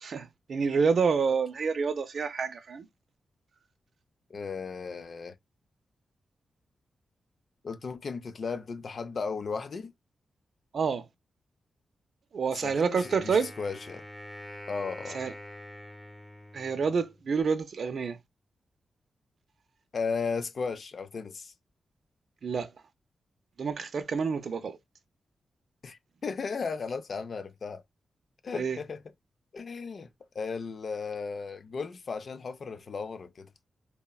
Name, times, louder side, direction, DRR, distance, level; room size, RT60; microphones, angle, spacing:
voice 1, 0.0-2.9 10.7-11.1 12.3-13.5 15.1-15.3 16.5-18.2 22.4-22.7 23.6-24.8 28.5-28.8, right 5 dB, 65° right, 0.4 m, -28 dB
voice 2, 4.3-5.3 7.6-9.9 12.5-14.0 14.7-15.2 19.9-21.5 25.8-27.8 28.4-29.0 29.5-30.1 30.3-33.5, left 5 dB, 55° left, 0.4 m, -35 dB
Wind instrument woodwind instrument, 13.0-17.3, left 1 dB, 10° left, 0.7 m, -45 dB
3.0 x 2.1 x 2.3 m
cardioid pair, 95°, 0 cm